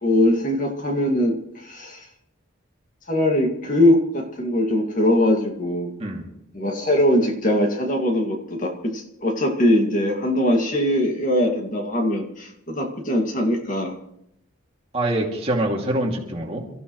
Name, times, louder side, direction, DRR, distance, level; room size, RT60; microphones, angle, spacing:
voice 1, 0.0-2.1 3.1-5.9 6.5-14.0, left 1 dB, 40° left, 1 dB, 2.2 m, -21 dB
voice 2, 14.9-16.7, right 1 dB, 30° right, -1 dB, 2.6 m, -25 dB
28.5 x 15.0 x 3.2 m, 0.79 s
head